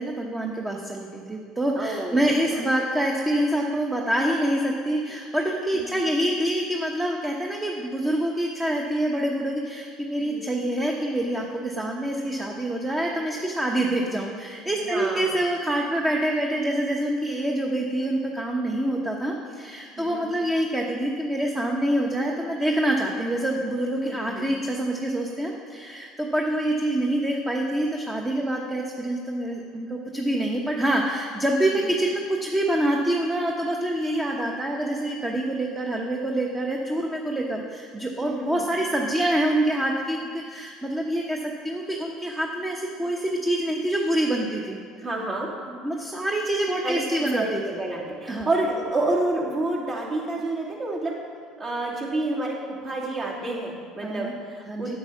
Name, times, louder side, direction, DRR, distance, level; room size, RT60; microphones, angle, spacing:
voice 1, 0.0-44.8 45.8-47.8 48.3-48.5 54.0-54.3 54.7-55.0, right 1 dB, 15° right, 0 dB, 1.1 m, -26 dB
voice 2, 1.8-2.2 2.5-2.6 5.7-5.8 10.2-10.4 14.8-15.3 20.0-20.3 24.0-24.4 31.7-31.8 38.2-38.5 44.9-45.5 46.8-47.0 47.3-51.1 51.6-55.0, right 2 dB, 45° right, -5 dB, 2.9 m, -29 dB
8.5 x 8.3 x 5.9 m, 2.1 s
supercardioid pair, 85°, 0 cm